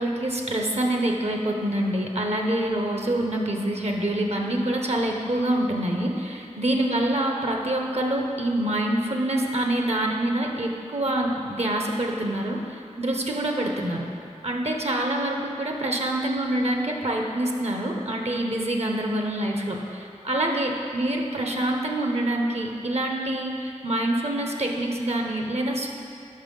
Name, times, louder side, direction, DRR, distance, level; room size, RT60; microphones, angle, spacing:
voice 1, 0.0-14.0 14.4-25.9, right 1 dB, 55° right, 1 dB, 0.7 m, -26 dB
5.7 x 5.5 x 5.3 m, 2.6 s
wide cardioid pair, 45°, 13 cm